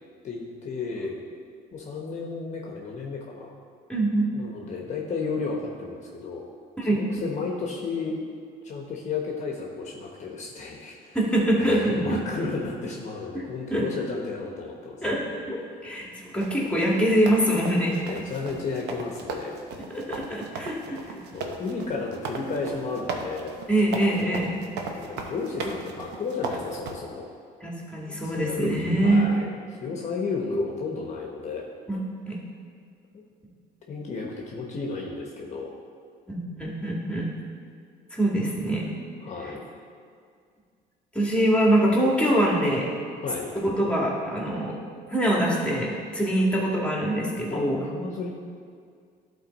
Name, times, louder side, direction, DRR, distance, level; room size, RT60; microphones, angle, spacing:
voice 1, 0.2-1.1 1.7-3.5 4.3-6.5 6.9-8.1 8.6-11.2 11.6-15.0 15.6-15.9 18.0-19.6 20.9-21.0 21.3-23.5 24.9-27.3 28.2-29.5 29.8-31.6 33.1-33.2 33.9-35.7 39.2-39.6 43.2-43.5 47.5-48.3, left 4 dB, 45° left, -1 dB, 1.0 m, -33 dB
voice 2, 3.9-4.3 6.8-7.0 11.1-12.2 13.7-13.9 15.0-15.2 15.5-15.6 15.8-18.0 19.9-21.0 23.7-24.6 27.6-29.2 30.5-30.6 31.9-32.0 32.3-32.4 36.3-37.3 38.1-38.9 41.1-42.8 43.5-44.8 45.1-47.8, right 1 dB, 5° left, -3 dB, 1.6 m, -24 dB
sound 1, 16.4-26.9, right 4 dB, 85° right, 0.8 m, -36 dB
11.5 x 4.1 x 4.0 m, 2.2 s
cardioid pair, 110°, 17 cm